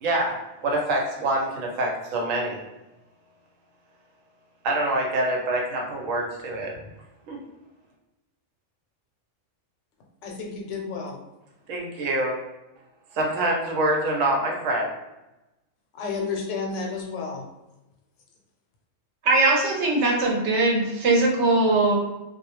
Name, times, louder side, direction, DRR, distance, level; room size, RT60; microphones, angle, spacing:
voice 1, 0.0-2.6 4.6-6.8 7.3-7.4 11.7-12.4 13.1-14.9, right 1 dB, 90° right, 0 dB, 1.0 m, -25 dB
voice 2, 10.2-11.2 15.9-17.5, left 4 dB, 70° left, 0 dB, 0.9 m, -31 dB
voice 3, 19.2-22.0, right 2 dB, 65° right, -1 dB, 0.9 m, -20 dB
2.3 x 2.0 x 2.9 m, 0.99 s
omnidirectional pair, 1.3 m